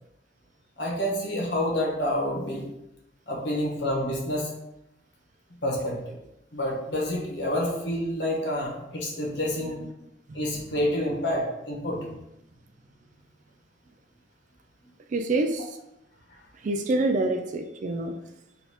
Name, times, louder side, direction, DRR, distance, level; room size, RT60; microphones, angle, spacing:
voice 1, 0.8-2.7 3.3-4.5 5.6-6.2 6.5-9.8 10.3-12.0, left 1 dB, 75° left, -2 dB, 1.3 m, -28 dB
voice 2, 9.3-9.7 10.3-10.7 11.9-12.2 15.1-15.8 16.5-18.2, right 2 dB, 45° right, 5 dB, 0.3 m, -28 dB
4.0 x 2.7 x 4.2 m, 0.87 s
head